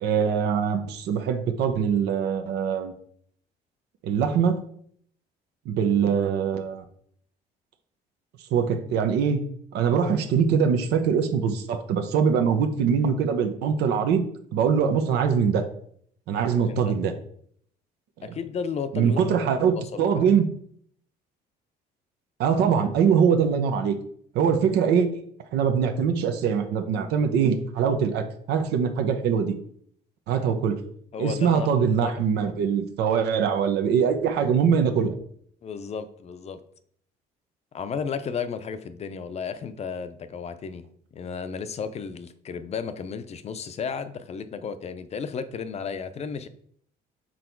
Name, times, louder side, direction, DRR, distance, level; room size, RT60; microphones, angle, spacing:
voice 1, 0.0-2.9 4.0-4.6 5.7-6.8 8.5-9.4 9.7-14.2 14.5-15.6 16.3-17.1 18.9-20.4 22.4-24.0 24.3-25.2 25.5-29.6 30.3-30.8 31.2-35.1, right 7 dB, 80° right, 6 dB, 0.8 m, -23 dB
voice 2, 16.6-16.9 18.2-20.3 31.1-32.2 35.6-36.6 37.7-40.8 41.1-46.5, left 6 dB, 40° left, 11 dB, 0.6 m, -34 dB
6.3 x 4.0 x 4.5 m, 0.63 s
cardioid pair, 110°, 17 cm